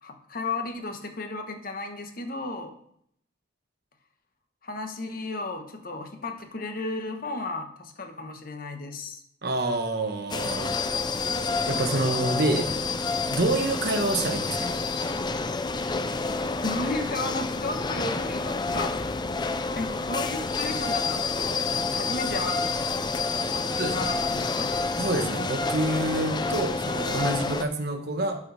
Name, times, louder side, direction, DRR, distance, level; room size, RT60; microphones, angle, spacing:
voice 1, 0.0-2.7 4.6-9.2 16.6-19.0 19.7-22.8 23.5-24.8, left 2 dB, 50° left, 5 dB, 1.2 m, -34 dB
voice 2, 9.4-10.7 11.7-12.7 13.3-14.8 23.8-24.0 25.0-28.4, right 2 dB, 55° right, 5 dB, 1.2 m, -27 dB
sound 1, 10.3-27.7, left 3 dB, 20° left, 0.4 m, -28 dB
12.0 x 4.8 x 4.2 m, 0.70 s
head